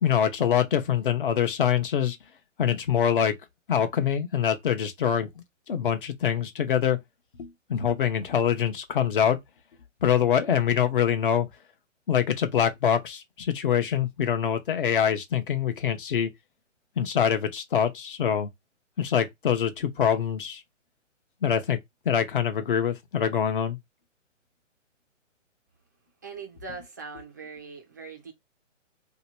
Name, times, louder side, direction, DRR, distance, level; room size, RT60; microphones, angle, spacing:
voice 1, 0.0-2.2 2.6-3.3 3.7-5.3 5.7-7.0 7.4-9.4 10.0-11.5 12.1-16.3 17.0-18.5 19.0-20.6 21.4-21.8 22.0-23.8, left 8 dB, 45° left, 0.8 m, -24 dB
voice 2, 26.2-28.3, right 4 dB, 15° right, 0.4 m, -41 dB
2.9 x 2.3 x 4.2 m
hypercardioid pair, 150°, 38 cm